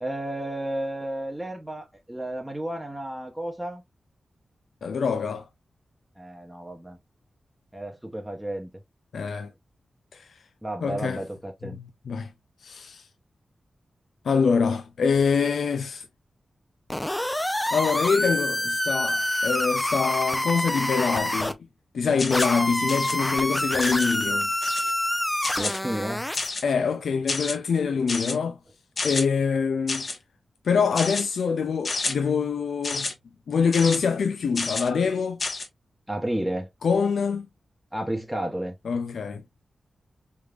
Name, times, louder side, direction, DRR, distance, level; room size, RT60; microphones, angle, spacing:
voice 1, 0.0-3.8 6.2-7.0 7.7-8.7 10.6-11.8 25.6-26.3 36.1-36.7 37.9-38.7, right 1 dB, 10° right, 0.8 m, -32 dB
voice 2, 4.8-5.5 9.1-9.5 10.1-10.3 10.8-11.2 11.7-12.3 12.6-13.1 14.2-16.0 17.7-21.5 21.9-24.5 26.6-28.6 29.0-30.1 30.6-33.1 33.5-35.4 36.8-37.5 38.9-39.4, left 5 dB, 90° left, 0.3 m, -25 dB
sound 1, 16.9-21.5 22.3-26.5, left 1 dB, 10° left, 0.4 m, -27 dB
sound 2, 22.2-22.6 22.9-23.2 23.8-24.1 24.6-24.9 25.4-25.8 26.3-26.7 27.3-27.6 28.1-28.4 29.0-29.2 29.9-30.2 30.9-31.2 31.8-32.1 32.8-33.1 33.7-34.0 34.5-34.9 35.4-35.7, left 3 dB, 55° left, 1.0 m, -30 dB
3.4 x 3.2 x 2.3 m
wide cardioid pair, 80°, 0 cm